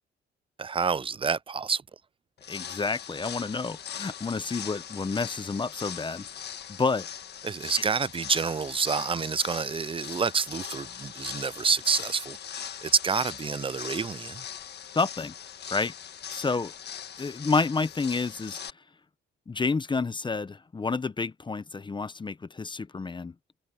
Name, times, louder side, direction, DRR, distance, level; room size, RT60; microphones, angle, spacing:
voice 1, 0.6-1.8 7.4-12.4 12.8-14.4, right 5 dB, 25° right, 0.5 m, -28 dB
sound 1, 2.4-18.7, left 9 dB, 55° left, 1.6 m, -40 dB
voice 2, 2.5-6.3 6.7-7.1 14.9-15.3 15.7-15.9 16.3-16.7 17.2-18.6 19.5-23.3, left 4 dB, 25° left, 0.8 m, -29 dB
open air
cardioid pair, 90°, 20 cm